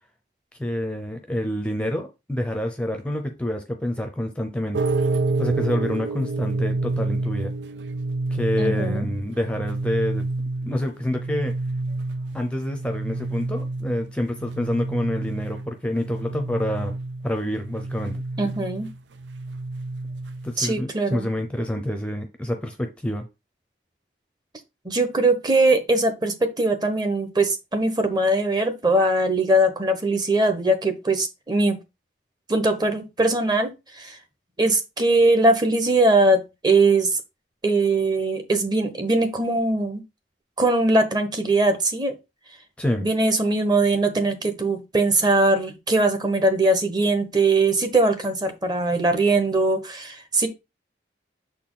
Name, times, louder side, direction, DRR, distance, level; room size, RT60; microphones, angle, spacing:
voice 1, 0.6-4.8 5.4-7.5 8.3-10.3 10.6-11.5 12.3-16.9 17.2-18.2 20.4-23.3 42.8-43.1, left 1 dB, 5° left, 0.7 m, -27 dB
sound 1, 4.7-20.6, right 2 dB, 85° right, 0.5 m, -28 dB
voice 2, 8.6-9.1 18.4-18.9 20.6-21.3 24.8-31.8 32.5-34.2 34.6-37.2 37.6-40.0 40.6-42.1 43.0-50.5, right 2 dB, 25° right, 1.0 m, -21 dB
6.8 x 4.3 x 3.8 m
head